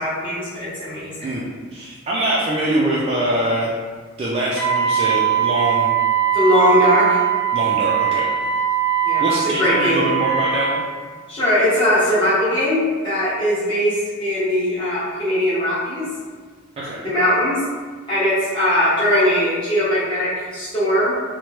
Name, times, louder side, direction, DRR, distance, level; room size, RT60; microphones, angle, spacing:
voice 1, 0.0-1.3 6.3-7.2 9.0-10.1 11.3-16.1 17.0-17.6 18.1-21.1, left 1 dB, 25° left, -12 dB, 1.2 m, -20 dB
voice 2, 1.7-3.7 4.2-6.0 7.5-8.3 9.2-10.8 16.8-17.1, right 1 dB, 30° right, -6 dB, 0.3 m, -23 dB
Wind instrument woodwind instrument, 4.6-10.8, right 9 dB, ahead, 0.7 m, -20 dB
3.0 x 2.1 x 2.9 m, 1.5 s
head